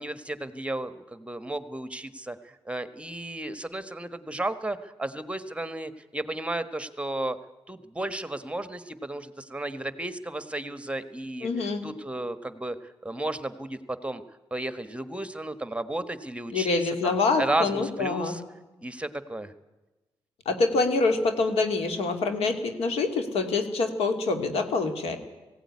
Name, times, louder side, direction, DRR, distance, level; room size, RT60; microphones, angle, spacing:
voice 1, 0.0-7.4 7.7-14.2 14.5-18.4 18.8-19.5, right 2 dB, 10° right, 12 dB, 1.3 m, -33 dB
voice 2, 11.4-11.8 16.5-18.4 20.5-25.2, left 3 dB, 85° left, 7 dB, 2.3 m, -26 dB
18.0 x 16.0 x 9.6 m, 1.1 s
cardioid pair, 65°, 10 cm